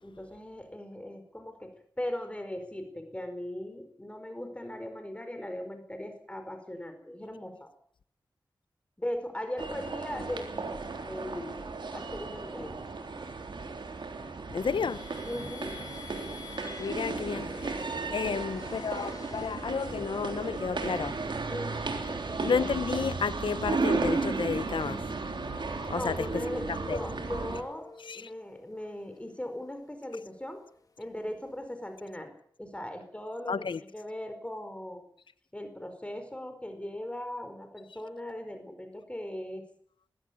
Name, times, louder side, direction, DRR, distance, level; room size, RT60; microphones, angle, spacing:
voice 1, 0.0-7.7 9.0-10.8 11.1-11.6 11.9-12.7 15.2-15.8 18.0-18.4 21.5-21.8 22.1-22.5 25.9-27.9 28.1-30.6 31.0-32.3 32.6-35.1 35.5-39.6, left 1 dB, 15° left, 4.7 m, -39 dB
sound 1, 9.6-27.6, right 3 dB, 75° right, 3.6 m, -34 dB
voice 2, 14.5-15.1 16.8-21.5 22.4-27.0 28.1-28.3 33.5-33.8, left 6 dB, 85° left, 0.9 m, -32 dB
sound 2, 14.6-20.0 20.6-21.4 21.9-31.1, left 4 dB, 50° left, 3.1 m, -51 dB
20.0 x 16.0 x 9.3 m
wide cardioid pair, 65°, 8 cm